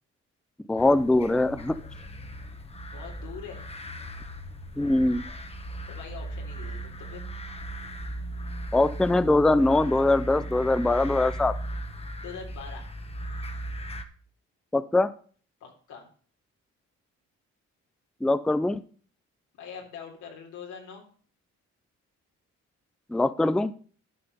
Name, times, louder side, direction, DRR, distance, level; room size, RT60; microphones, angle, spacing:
voice 1, 0.7-1.8 4.8-5.3 8.7-11.5 14.7-15.1 18.2-18.8 23.1-23.7, left 2 dB, ahead, 14 dB, 0.4 m, -22 dB
sound 1, 0.8-14.0, right 1 dB, 20° left, 1.1 m, -37 dB
voice 2, 2.9-3.7 5.9-7.2 12.2-12.9 15.6-16.1 19.6-21.0, left 6 dB, 85° left, 1 dB, 3.5 m, -43 dB
11.5 x 5.7 x 5.4 m, 0.43 s
cardioid pair, 115°, 29 cm